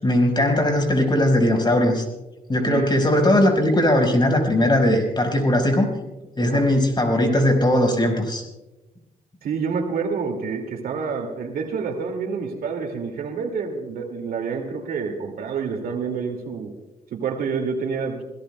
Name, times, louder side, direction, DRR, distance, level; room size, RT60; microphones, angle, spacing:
voice 1, 0.0-2.0 2.5-5.9 6.4-8.4, left 1 dB, 30° left, 3 dB, 4.8 m, -19 dB
voice 2, 9.4-16.7 17.1-18.2, right 5 dB, 75° right, 4 dB, 2.2 m, -28 dB
27.0 x 17.5 x 2.2 m, 1.0 s
cardioid pair, 65°, 15 cm